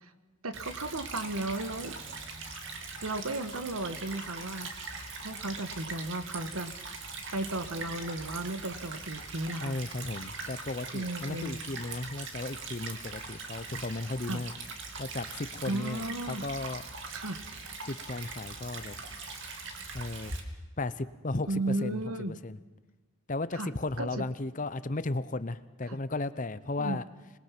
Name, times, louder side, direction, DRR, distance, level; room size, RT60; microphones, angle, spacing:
voice 1, 0.4-2.0 3.0-4.7 5.2-7.0 7.3-9.8 10.9-11.6 14.3-14.4 15.7-16.4 17.1-17.4 21.5-22.3 23.5-23.7 24.0-24.2 25.9-26.0 26.8-27.0, right 2 dB, 85° right, 11 dB, 1.5 m, -34 dB
Stream / Trickle dribble, 0.5-20.4, right 4 dB, 55° right, 2.7 m, -41 dB
voice 2, 9.6-14.5 15.0-16.9 17.9-19.0 19.9-20.3 20.8-22.0 22.3-22.6 23.3-27.0, left 2 dB, 35° left, 14 dB, 0.8 m, -35 dB
26.0 x 21.0 x 6.0 m, 1.2 s
head